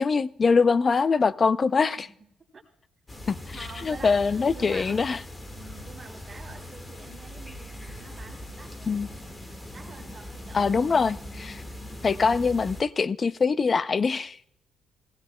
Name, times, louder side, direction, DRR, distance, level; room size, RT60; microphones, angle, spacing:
voice 1, 0.0-2.1 3.3-3.6 3.8-5.2 8.9-9.1 10.5-11.6 12.0-14.5, left 5 dB, 35° left, 0.5 m, -23 dB
voice 2, 2.0-2.6 3.5-5.1 5.5-8.9 9.7-11.0, right 4 dB, 35° right, 2.9 m, -47 dB
sound 1, 3.1-12.8, left 1 dB, 20° left, 1.7 m, -41 dB
17.0 x 16.0 x 2.2 m
cardioid pair, 90°, 0 cm